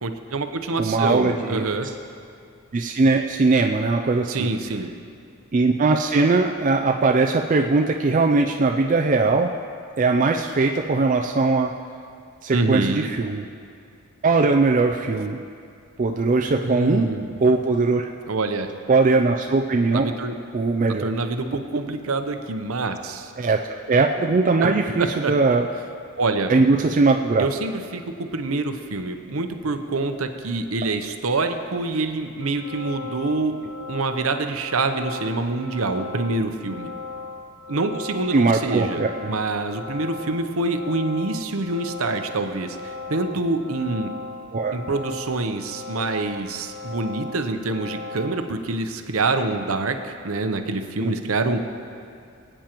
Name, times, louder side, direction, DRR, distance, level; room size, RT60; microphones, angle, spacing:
voice 1, 0.0-1.9 4.3-4.9 12.5-13.1 16.6-17.3 18.3-18.7 19.9-20.3 20.9-23.3 24.6-25.3 26.2-26.5 27.4-33.6 33.9-36.9 37.7-44.1 44.7-51.6, right 3 dB, 70° right, 7 dB, 0.7 m, -26 dB
voice 2, 0.8-1.6 2.7-4.5 5.5-9.5 10.0-11.7 12.4-13.4 14.2-15.4 16.0-17.1 17.4-18.1 18.9-20.1 20.5-21.1 23.4-23.6 23.9-25.7 26.5-27.5 38.3-39.3 44.5-44.8 51.0-51.1, right 3 dB, 35° right, 3 dB, 0.4 m, -20 dB
sound 1, 32.4-48.5, left 4 dB, 75° left, 0.7 m, -37 dB
22.5 x 8.9 x 3.0 m, 2.4 s
head